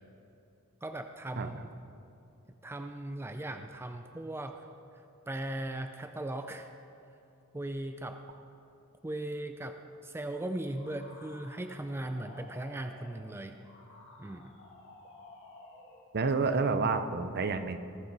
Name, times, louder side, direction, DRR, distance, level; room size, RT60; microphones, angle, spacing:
voice 1, 0.8-1.6 2.6-4.7 5.3-6.7 7.5-8.2 9.0-9.8 10.0-13.5 14.2-14.5, right 1 dB, 10° right, 6 dB, 0.4 m, -38 dB
sound 1, 10.7-16.1, left 2 dB, 60° left, 1.7 m, -53 dB
voice 2, 16.1-17.8, right 4 dB, 50° right, 9 dB, 0.6 m, -29 dB
19.5 x 7.2 x 4.0 m, 2.8 s
head